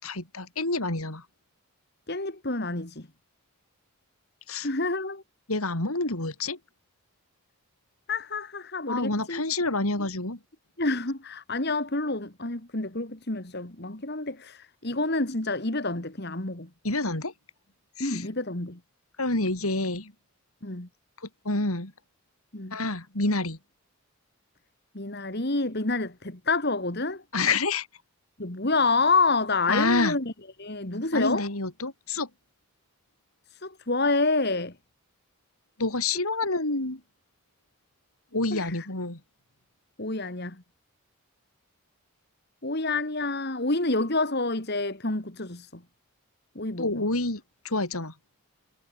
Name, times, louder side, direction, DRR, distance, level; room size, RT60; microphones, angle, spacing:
voice 1, 0.0-1.2 4.5-4.7 5.5-6.6 8.9-10.4 16.8-17.3 18.0-18.2 19.2-20.1 21.4-21.9 22.7-23.6 27.3-27.9 29.7-30.2 31.1-32.3 35.8-37.0 38.3-39.2 46.8-48.1, left 2 dB, 80° left, 4.3 m, -28 dB
voice 2, 2.1-3.1 4.6-5.2 8.1-9.4 10.8-16.7 18.0-18.8 20.6-20.9 22.5-22.8 24.9-27.2 28.4-30.3 30.6-31.5 33.5-34.7 36.5-36.6 38.5-38.9 40.0-40.6 42.6-45.8 46.6-47.0, left 3 dB, 45° left, 2.3 m, -28 dB
head